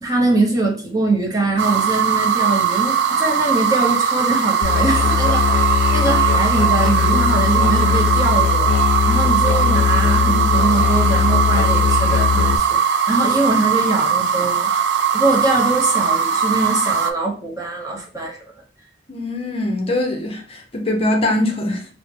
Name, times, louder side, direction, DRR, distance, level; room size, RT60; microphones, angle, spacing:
voice 1, 0.0-18.4, right 2 dB, 20° right, 0.7 m, -22 dB
sound 1, 1.6-17.1, right 7 dB, 65° right, 0.4 m, -19 dB
Musical instrument, 4.6-12.6, left 7 dB, 85° left, 0.4 m, -19 dB
voice 2, 19.1-21.9, left 1 dB, 30° left, 0.6 m, -22 dB
4.6 x 2.1 x 3.2 m
head